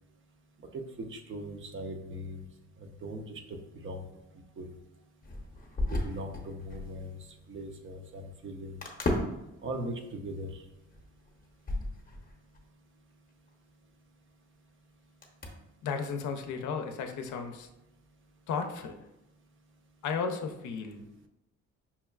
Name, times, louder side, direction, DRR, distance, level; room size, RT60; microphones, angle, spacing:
voice 1, 0.7-2.4 2.8-4.1 4.6-4.7 5.9-8.8 9.6-10.6, right 1 dB, 40° right, 5 dB, 0.5 m, -40 dB
sound 1, 5.2-7.0 7.3-7.4 8.8-9.5 10.1-10.2 10.5-12.6 13.5-13.6 15.2-15.5, left 1 dB, 30° left, 0.7 m, -34 dB
voice 2, 15.8-17.7 18.5-19.0 20.0-21.0, left 5 dB, 75° left, 5 dB, 0.5 m, -34 dB
5.5 x 2.3 x 2.2 m, 0.90 s
cardioid pair, 90°, 30 cm